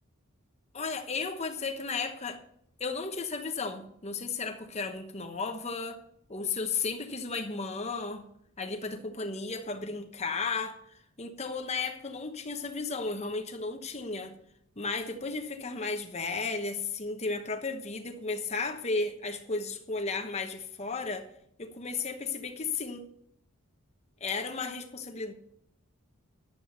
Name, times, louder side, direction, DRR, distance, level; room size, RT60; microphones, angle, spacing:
voice 1, 0.7-2.4 2.8-6.0 6.3-8.2 8.6-10.8 11.2-14.3 14.8-21.3 21.6-23.1 24.2-25.3, left 4 dB, 30° left, 5 dB, 1.0 m, -34 dB
11.5 x 7.6 x 6.6 m, 0.73 s
head